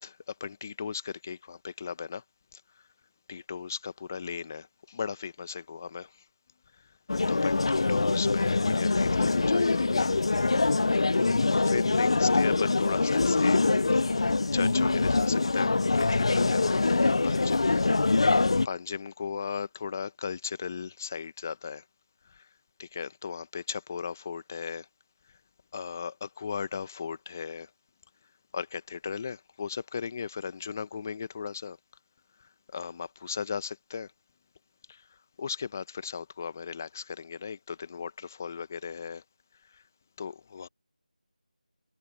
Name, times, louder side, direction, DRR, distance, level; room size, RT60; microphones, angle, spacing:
voice 1, 0.0-2.2 2.5-2.6 3.3-6.1 7.3-10.1 11.5-13.6 14.0-17.9 18.2-18.4 18.6-21.8 22.8-24.9 25.7-27.7 28.5-31.8 32.7-34.1 34.9-35.0 35.4-39.2 40.2-40.7, left 6 dB, 20° left, 1.1 m, -36 dB
sound 1, 7.1-18.7, left 3 dB, 40° left, 0.5 m, -24 dB
figure-of-eight pair, 170°, 4 cm